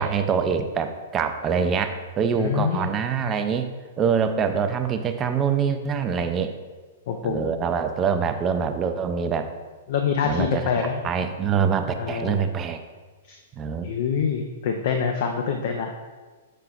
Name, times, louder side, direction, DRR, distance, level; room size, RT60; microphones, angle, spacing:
voice 1, 0.0-3.7 4.0-6.5 7.2-9.5 10.2-10.7 11.0-12.8 13.6-13.9, right 6 dB, 25° right, 8 dB, 0.4 m, -24 dB
voice 2, 2.4-2.9 7.1-7.5 9.9-11.0 12.0-12.4 13.2-13.4 13.8-15.9, left 6 dB, 50° left, 4 dB, 0.4 m, -25 dB
7.0 x 5.6 x 2.3 m, 1.3 s
figure-of-eight pair, 105°, 0 cm